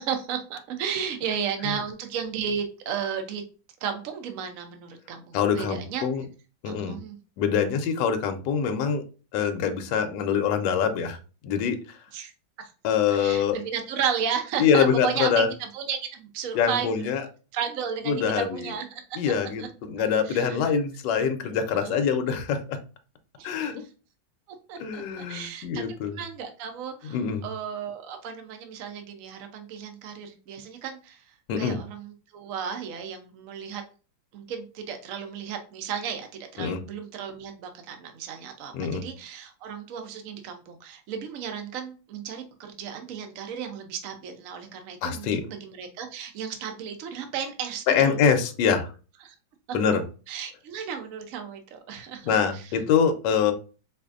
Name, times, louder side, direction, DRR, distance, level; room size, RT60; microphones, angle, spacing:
voice 1, 0.0-3.4 3.8-6.0 6.7-7.2 12.1-12.3 12.6-12.7 13.1-15.5 15.7-17.1 17.5-19.0 19.6-19.7 20.3-20.6 21.8-21.9 23.4-23.5 24.7-25.8 26.1-27.2 27.4-31.2 31.6-33.8 34.3-48.2 49.2-49.3 50.3-52.6, right 7 dB, 70° right, 6 dB, 0.8 m, -34 dB
voice 2, 5.3-6.3 6.6-7.0 7.4-9.0 9.3-11.2 11.4-12.0 12.8-13.6 14.6-15.5 16.5-17.3 18.1-18.7 19.2-22.8 23.4-23.8 24.8-26.2 27.0-27.4 31.5-31.8 36.6-36.8 38.7-39.0 45.0-45.5 47.9-48.9 49.7-50.0 52.2-53.5, left 7 dB, 75° left, 6 dB, 1.2 m, -24 dB
4.6 x 2.5 x 2.4 m, 0.35 s
omnidirectional pair, 2.1 m